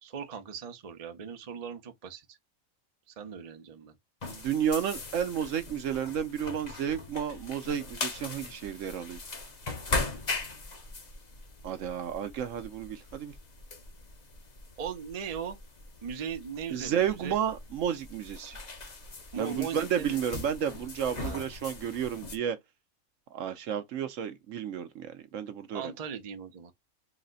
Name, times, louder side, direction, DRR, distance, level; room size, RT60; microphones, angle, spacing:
voice 1, 0.0-2.4 3.1-3.9 14.8-15.6 16.0-17.4 19.3-20.2 21.2-21.5 25.7-26.7, right 7 dB, 40° right, 0.6 m, -39 dB
sound 1, 4.2-22.4, left 3 dB, 35° left, 0.8 m, -40 dB
voice 2, 4.3-9.2 11.6-13.3 16.7-18.6 19.3-22.6 23.3-25.9, right 9 dB, 65° right, 0.9 m, -32 dB
4.1 x 2.2 x 3.8 m
omnidirectional pair, 1.5 m